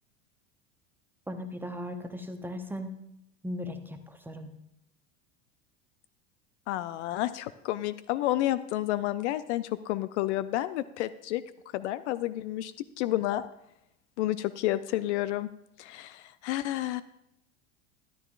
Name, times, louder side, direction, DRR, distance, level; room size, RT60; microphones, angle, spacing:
voice 1, 1.3-3.0 3.4-4.5, left 1 dB, 5° right, 7 dB, 0.8 m, -37 dB
voice 2, 6.7-11.4 11.7-13.5 14.2-15.5 15.8-17.0, left 15 dB, 60° left, 15 dB, 0.5 m, -30 dB
13.0 x 11.0 x 2.4 m, 0.82 s
hypercardioid pair, 90°, 39 cm